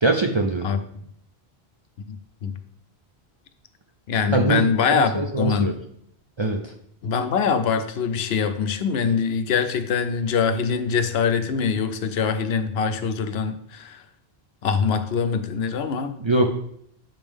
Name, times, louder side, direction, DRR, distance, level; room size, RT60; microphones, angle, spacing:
voice 1, 0.0-0.7 4.2-5.7 6.4-6.6 16.2-16.5, right 3 dB, 40° right, 2 dB, 0.4 m, -22 dB
voice 2, 2.1-2.5 4.1-5.8 7.0-14.0 14.6-16.1, left 6 dB, 80° left, 9 dB, 0.9 m, -23 dB
7.5 x 5.1 x 3.6 m, 0.68 s
omnidirectional pair, 1.0 m